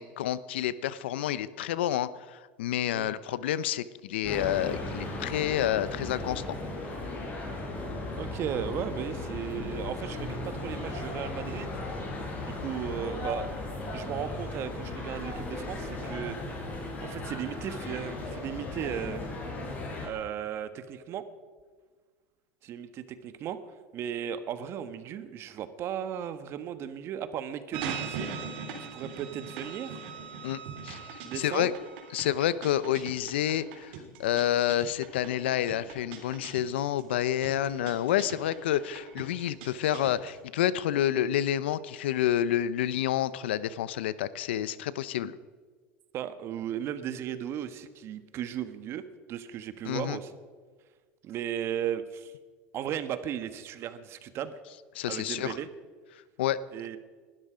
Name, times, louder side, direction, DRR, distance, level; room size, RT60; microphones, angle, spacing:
voice 1, 0.0-6.4 30.4-31.0 31.4-31.7 32.1-33.9 34.2-45.4 49.8-50.2 54.9-55.6 56.4-56.6, left 11 dB, 90° left, 17 dB, 0.7 m, -29 dB
sound 1, 4.2-20.1, left 2 dB, 30° left, 5.6 m, -36 dB
voice 2, 8.1-11.7 12.4-13.5 13.9-16.6 17.0-19.2 20.0-21.3 22.6-30.0 31.2-31.7 46.1-49.0 49.3-50.3 51.2-52.3 52.7-54.6 55.1-55.7 56.7-57.0, right 9 dB, 45° right, 12 dB, 1.3 m, -36 dB
sound 2, 27.7-40.4, right 6 dB, 75° right, 3.2 m, -41 dB
20.0 x 12.5 x 5.1 m, 1.5 s
supercardioid pair, 110°, 6 cm